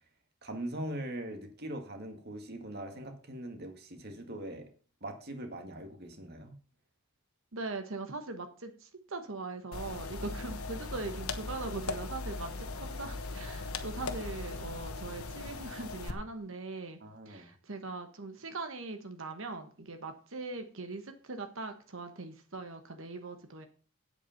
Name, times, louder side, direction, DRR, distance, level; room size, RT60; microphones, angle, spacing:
voice 1, 0.4-4.7 5.0-6.5 17.0-17.5, right 1 dB, 45° right, 5 dB, 2.0 m, -41 dB
voice 2, 7.5-17.0 17.3-23.7, right 3 dB, 60° right, 6 dB, 1.2 m, -41 dB
sound 1, 9.7-16.1, left 3 dB, 80° left, 1.2 m, -39 dB
8.7 x 8.2 x 5.7 m, 0.39 s
head